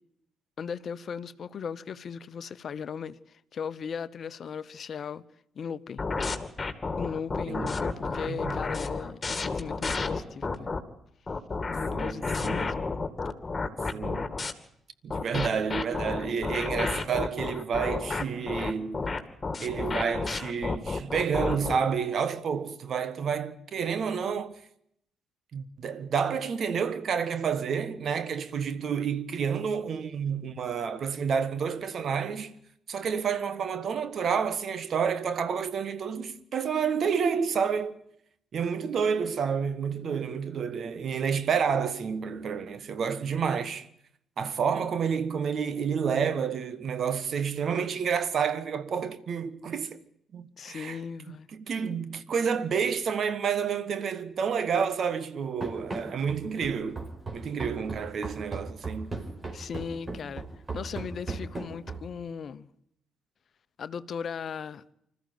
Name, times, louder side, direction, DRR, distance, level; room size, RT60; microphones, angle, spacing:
voice 1, 0.6-5.2 5.5-6.0 7.0-10.7 11.7-12.9 50.6-51.5 59.5-60.4 60.7-62.7 63.8-64.9, left 6 dB, 55° left, 0.9 m, -37 dB
sound 1, 6.0-10.8 11.3-14.5 15.1-21.8, left 3 dB, 30° left, 2.5 m, -31 dB
voice 2, 7.5-7.9 8.3-8.5 11.9-12.7 13.9-14.3 15.0-19.1 19.6-24.6 25.5-32.5 32.9-38.0 38.5-43.9 44.4-50.0 50.3-51.0 51.3-57.0 57.3-59.1, right 6 dB, 55° right, 1.5 m, -29 dB
Run, 55.6-62.2, right 3 dB, 35° right, 4.4 m, -37 dB
25.5 x 14.0 x 9.3 m
hypercardioid pair, 50°, 0 cm